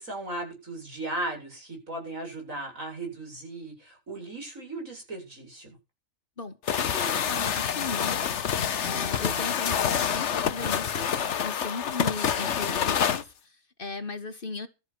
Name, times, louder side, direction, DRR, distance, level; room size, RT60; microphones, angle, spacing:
voice 1, 0.0-5.7 9.2-9.5, right 2 dB, 90° right, 8.1 m, -37 dB
voice 2, 6.4-8.3 8.8-14.7, left 3 dB, 45° left, 1.6 m, -37 dB
sound 1, 6.7-13.2, left 8 dB, 60° left, 1.2 m, -27 dB
13.5 x 10.0 x 6.2 m
omnidirectional pair, 1.4 m